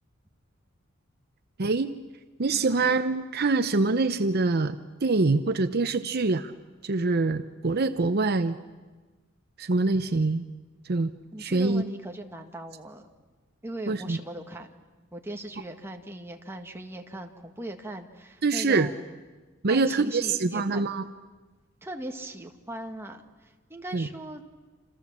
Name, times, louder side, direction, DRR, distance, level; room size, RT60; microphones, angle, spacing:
voice 1, 1.6-2.0 2.4-6.5 6.8-8.6 9.6-10.4 10.8-11.1 11.4-11.8 13.9-14.2 18.4-18.9 19.6-21.0 23.9-24.1, right 3 dB, 50° right, 10 dB, 0.8 m, -25 dB
voice 2, 11.3-13.1 13.6-14.7 15.1-19.2 19.7-20.9 21.8-24.4, right 1 dB, 10° right, 3 dB, 1.8 m, -39 dB
27.5 x 27.5 x 7.4 m, 1.3 s
head